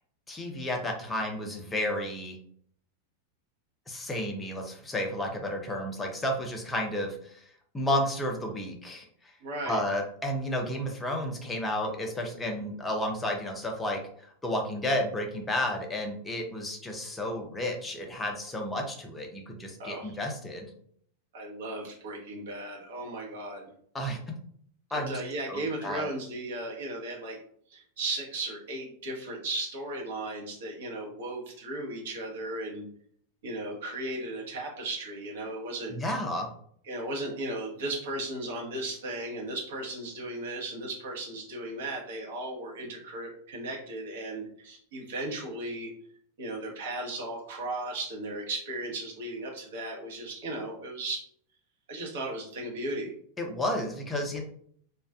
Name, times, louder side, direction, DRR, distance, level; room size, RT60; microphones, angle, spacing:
voice 1, 0.3-2.4 3.9-7.4 7.7-9.1 9.7-14.0 14.4-20.7 23.9-24.2 24.9-25.1 25.5-26.1 35.9-36.5 53.4-54.4, left 1 dB, 15° left, 2 dB, 0.5 m, -32 dB
voice 2, 9.4-9.8 19.8-20.2 21.3-23.7 24.9-27.4 27.7-32.8 33.4-36.0 36.8-45.9 46.4-51.2 51.9-53.1, right 2 dB, 55° right, -1 dB, 0.8 m, -36 dB
2.4 x 2.3 x 2.3 m, 0.62 s
figure-of-eight pair, 90°, 0 cm